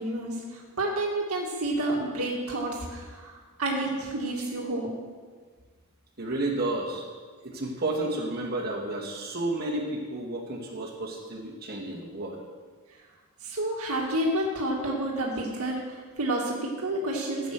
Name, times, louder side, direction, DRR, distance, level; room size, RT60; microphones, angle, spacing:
voice 1, 0.0-4.9 13.4-17.5, right 1 dB, 75° right, -2 dB, 2.1 m, -30 dB
voice 2, 6.2-7.1 7.4-12.4, right 2 dB, 45° right, -3 dB, 2.4 m, -31 dB
14.5 x 8.8 x 6.2 m, 1.5 s
head